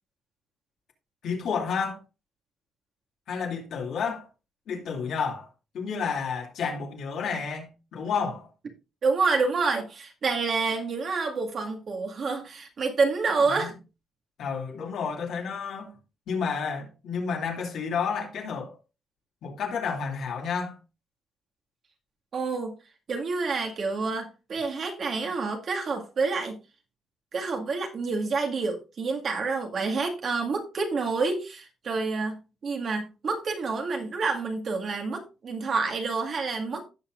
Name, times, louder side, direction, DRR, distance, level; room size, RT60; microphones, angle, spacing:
voice 1, 1.2-2.0 3.3-4.3 4.7-5.5 5.7-8.5 13.5-13.7 14.4-16.0 16.3-18.8 19.4-20.8, left 6 dB, 70° left, 2.6 m, -31 dB
voice 2, 9.0-13.7 22.3-22.8 23.1-26.6 27.3-36.9, right 4 dB, 50° right, 2.1 m, -28 dB
16.0 x 5.8 x 2.6 m
cardioid pair, 90°, 0 cm